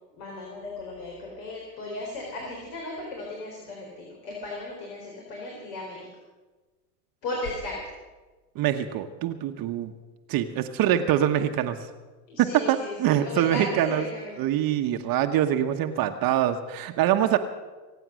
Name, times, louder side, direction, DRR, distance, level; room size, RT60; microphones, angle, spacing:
voice 1, 0.2-6.1 7.2-7.8 12.3-14.3, left 2 dB, 65° left, -1 dB, 4.1 m, -36 dB
voice 2, 8.5-9.9 10.3-11.9 12.4-14.1 14.4-17.4, right 11 dB, 45° right, 6 dB, 1.1 m, -24 dB
24.5 x 9.0 x 6.3 m, 1.3 s
hypercardioid pair, 100°, 49 cm